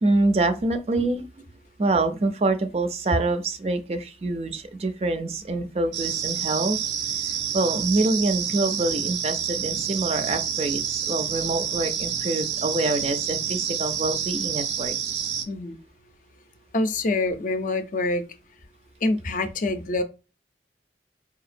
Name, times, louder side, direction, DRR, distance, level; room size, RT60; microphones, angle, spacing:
voice 1, 0.0-1.4 1.8-6.8 7.5-15.0, right 2 dB, 35° right, 0.4 m, -25 dB
sound 1, 5.9-15.5, right 8 dB, 85° right, 0.5 m, -28 dB
voice 2, 15.5-15.8 16.7-18.2 19.0-20.0, left 2 dB, 45° left, 0.5 m, -25 dB
4.9 x 2.8 x 2.5 m
head